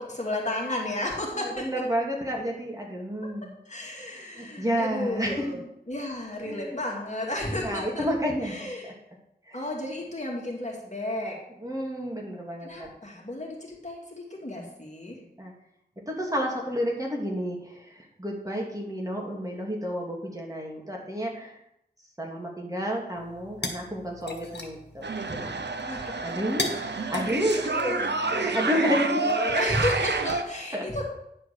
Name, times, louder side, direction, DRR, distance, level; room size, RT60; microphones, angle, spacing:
voice 1, 0.0-1.6 3.7-5.6 5.9-8.1 8.4-9.0 9.5-11.3 12.6-15.2 25.8-26.3 27.6-31.0, left 1 dB, 40° left, -2 dB, 2.5 m, -33 dB
voice 2, 1.3-3.6 4.1-5.5 6.4-6.8 7.5-8.6 8.8-8.9 9.5-9.6 11.6-12.9 15.2-15.5 16.1-21.6 22.2-25.6 26.2-27.8 28.4-29.2 30.7-30.9, equal, 20° right, -1 dB, 2.4 m, -30 dB
sound 1, 23.2-28.5, left 2 dB, 75° left, 1.4 m, -38 dB
sound 2, 25.0-30.4, right 3 dB, 80° right, 0.8 m, -29 dB
10.0 x 4.9 x 6.6 m, 0.79 s
wide cardioid pair, 50°, 18 cm